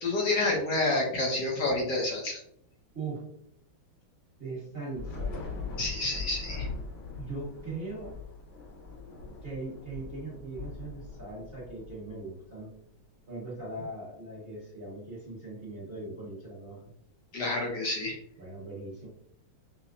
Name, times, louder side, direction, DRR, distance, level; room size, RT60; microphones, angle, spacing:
voice 1, 0.0-2.4 5.8-6.7 17.3-18.2, left 2 dB, 65° left, -1 dB, 1.3 m, -29 dB
voice 2, 4.4-5.4 7.2-8.1 9.4-12.7 13.3-16.9 18.4-19.1, right 3 dB, 35° right, -6 dB, 1.0 m, -40 dB
Thunder / Rain, 4.9-12.5, left 4 dB, 85° left, 1.9 m, -41 dB
5.5 x 2.0 x 2.5 m, 0.70 s
omnidirectional pair, 2.2 m